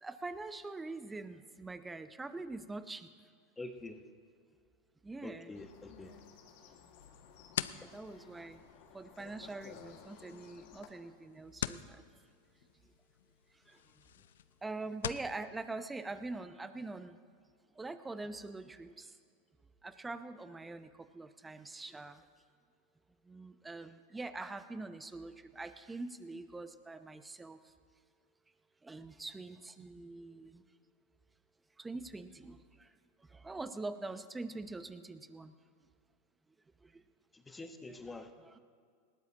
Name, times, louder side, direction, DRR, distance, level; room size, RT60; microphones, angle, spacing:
voice 1, 0.0-3.1 5.0-5.6 7.7-8.6 8.9-12.1 13.7-14.0 14.6-17.2 17.7-19.2 19.8-22.2 23.2-27.7 28.8-30.7 31.8-32.9 33.2-35.5 36.8-37.0 37.9-38.6, right 3 dB, 10° right, 11 dB, 0.8 m, -44 dB
voice 2, 3.6-4.0 5.2-6.1 37.5-38.3, left 2 dB, 15° left, 6 dB, 1.2 m, -46 dB
sound 1, 5.5-10.9, left 7 dB, 60° left, 1.9 m, -56 dB
sound 2, 7.0-15.3, left 10 dB, 80° left, 0.5 m, -45 dB
20.0 x 17.5 x 2.9 m, 2.1 s
hypercardioid pair, 100°, 0 cm